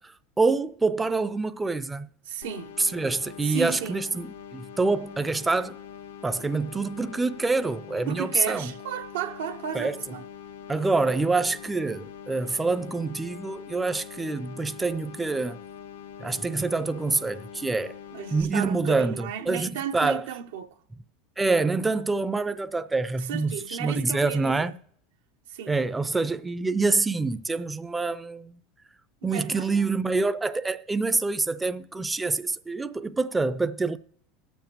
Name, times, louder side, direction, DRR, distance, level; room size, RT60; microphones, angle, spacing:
voice 1, 0.4-2.1 2.8-5.8 6.2-8.7 9.7-9.9 10.7-15.6 16.2-18.0 18.3-20.2 21.4-24.7 25.7-28.6 29.2-34.0, right 3 dB, 15° right, 0.4 m, -26 dB
voice 2, 2.2-2.8 3.4-4.1 8.1-10.2 18.1-20.8 23.2-24.7 25.5-25.8 29.2-29.9, right 9 dB, 85° right, 0.8 m, -34 dB
sound 1, 2.4-18.4, left 8 dB, 90° left, 0.7 m, -43 dB
21.0 x 7.1 x 3.0 m
supercardioid pair, 105°, 0 cm